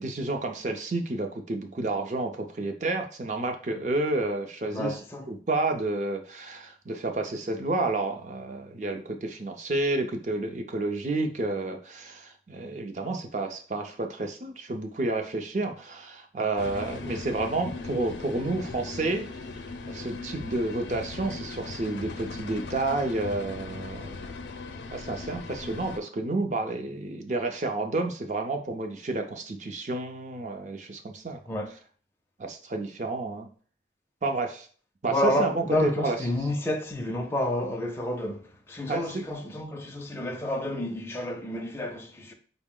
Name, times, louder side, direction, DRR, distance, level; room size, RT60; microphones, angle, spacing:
voice 1, 0.0-5.0 5.3-19.3 19.8-24.3 24.9-31.4 32.4-33.5 34.2-34.7 35.0-36.2 38.9-39.2, right 2 dB, 45° right, 0.5 m, -30 dB
voice 2, 4.7-5.3 31.5-31.7 35.1-42.3, left 1 dB, 15° left, 0.4 m, -30 dB
sound 1, 16.6-26.0, left 3 dB, 90° left, 0.5 m, -38 dB
4.9 x 2.0 x 3.7 m
head